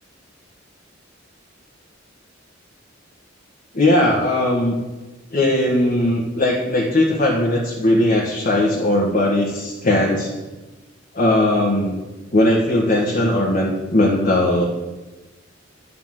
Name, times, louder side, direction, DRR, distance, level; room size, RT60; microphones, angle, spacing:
voice 1, 3.7-4.8 5.3-10.3 11.1-12.0 12.3-14.6, left 1 dB, 45° left, -2 dB, 1.6 m, -18 dB
11.0 x 5.7 x 7.7 m, 1.2 s
head